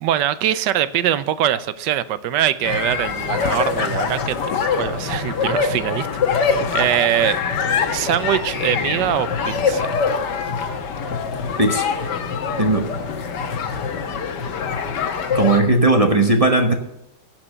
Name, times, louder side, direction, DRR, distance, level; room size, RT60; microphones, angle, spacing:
voice 1, 0.0-4.5 4.8-6.1 6.4-7.4 7.9-9.9, right 11 dB, 85° right, 15 dB, 1.3 m, -22 dB
sound 1, 2.6-15.6, left 5 dB, 75° left, 1.7 m, -24 dB
voice 2, 12.6-12.9 15.3-16.7, right 2 dB, 25° right, 3 dB, 0.9 m, -17 dB
16.0 x 6.0 x 6.8 m, 0.84 s
omnidirectional pair, 1.9 m